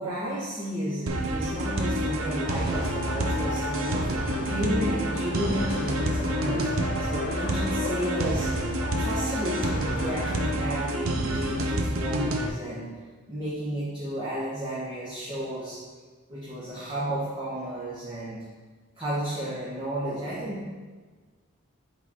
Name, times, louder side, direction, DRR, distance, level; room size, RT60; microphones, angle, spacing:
voice 1, 0.0-4.1 4.4-6.7 7.0-8.5 9.0-12.9 13.3-15.8 16.3-18.4 19.0-20.7, equal, 25° right, -10 dB, 1.2 m, -32 dB
sound 1, 1.1-12.5, right 1 dB, 80° right, 0.7 m, -28 dB
Race car auto racing, 1.4-10.7, left 3 dB, 45° left, 0.5 m, -38 dB
8.0 x 4.1 x 3.6 m, 1.4 s
head